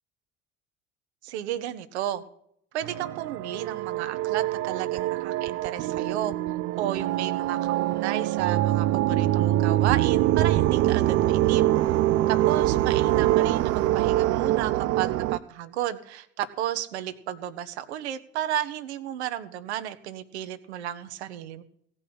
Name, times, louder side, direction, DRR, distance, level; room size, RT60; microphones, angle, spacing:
voice 1, 1.2-2.2 2.7-6.3 6.8-11.6 12.3-21.6, right 11 dB, 70° right, 10 dB, 1.0 m, -33 dB
sound 1, 2.8-15.4, right 15 dB, 45° right, 0.5 m, -24 dB
16.0 x 5.5 x 8.7 m, 0.71 s
figure-of-eight pair, 60°, 34 cm